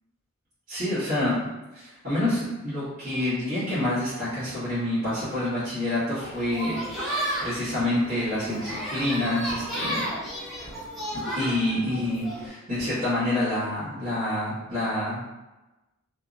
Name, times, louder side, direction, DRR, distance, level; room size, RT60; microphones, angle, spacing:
voice 1, 0.7-1.3 1.7-10.1 11.3-15.3, left 1 dB, 45° right, -16 dB, 1.4 m, -27 dB
sound 1, 6.2-12.5, equal, ahead, 0.7 m, -33 dB
3.2 x 2.0 x 2.4 m, 1.0 s
head